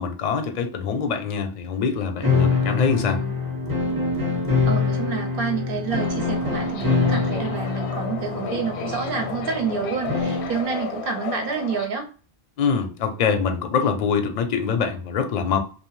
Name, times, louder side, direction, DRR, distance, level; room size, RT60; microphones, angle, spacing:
voice 1, 0.0-3.2 12.6-15.6, left 6 dB, 55° left, 0.5 m, -24 dB
sound 1, 2.2-10.6, left 4 dB, 25° right, 0.7 m, -25 dB
voice 2, 3.0-3.4 4.7-12.1, right 5 dB, 65° right, 0.7 m, -28 dB
Subway metro underground, 5.9-11.9, left 6 dB, 85° left, 0.8 m, -34 dB
2.7 x 2.0 x 3.0 m
omnidirectional pair, 1.1 m